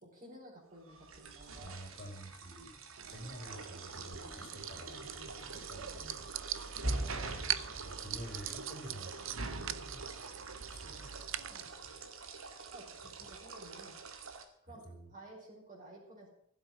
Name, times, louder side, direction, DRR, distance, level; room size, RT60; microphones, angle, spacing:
voice 1, 0.0-1.8 7.0-7.3 11.4-11.7 12.7-14.0 14.6-14.9 15.1-16.3, right 1 dB, 40° right, -3 dB, 5.0 m, -53 dB
sound 1, 0.9-14.4, right 3 dB, 85° right, 2.1 m, -44 dB
voice 2, 1.6-2.8 3.1-6.3 7.8-10.1 10.7-11.2 12.0-12.1 14.6-15.1, equal, 45° left, 3 dB, 4.6 m, -49 dB
sound 2, 3.0-11.7, right 10 dB, 70° right, 0.7 m, -43 dB
15.0 x 8.1 x 7.6 m, 0.69 s
head